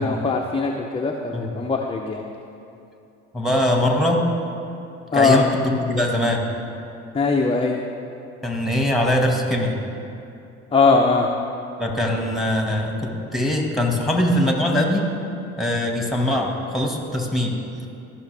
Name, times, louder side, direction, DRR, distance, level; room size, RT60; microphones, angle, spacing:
voice 1, 0.0-2.2 5.1-5.5 7.1-7.8 10.7-11.3, left 4 dB, 15° left, 1 dB, 0.6 m, -20 dB
voice 2, 3.3-4.2 5.1-6.4 8.4-9.8 11.8-15.1 15.6-17.6, left 1 dB, ahead, 0 dB, 1.7 m, -22 dB
14.0 x 5.8 x 3.4 m, 2.7 s
hypercardioid pair, 65°, 35 cm